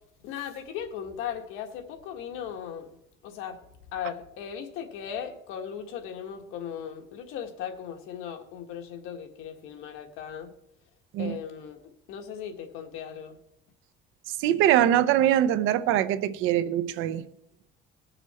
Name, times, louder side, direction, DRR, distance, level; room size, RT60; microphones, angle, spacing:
voice 1, 0.2-2.9 3.2-3.6 3.9-10.5 11.2-13.4, left 8 dB, 85° left, 1.7 m, -37 dB
voice 2, 14.4-17.3, right 11 dB, 80° right, 0.8 m, -23 dB
19.5 x 6.8 x 4.3 m
cardioid pair, 145°, 21 cm